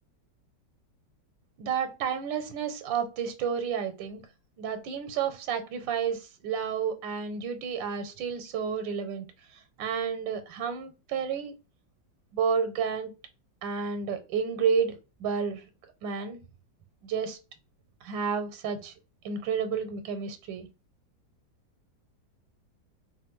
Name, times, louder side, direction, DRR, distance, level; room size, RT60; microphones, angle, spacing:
voice 1, 1.6-4.2 4.6-9.3 9.5-11.5 12.3-13.1 13.6-15.6 16.0-16.4 17.0-17.4 18.0-18.9 19.2-20.7, right 6 dB, 85° right, 1.3 m, -31 dB
3.1 x 2.4 x 3.0 m
omnidirectional pair, 2.0 m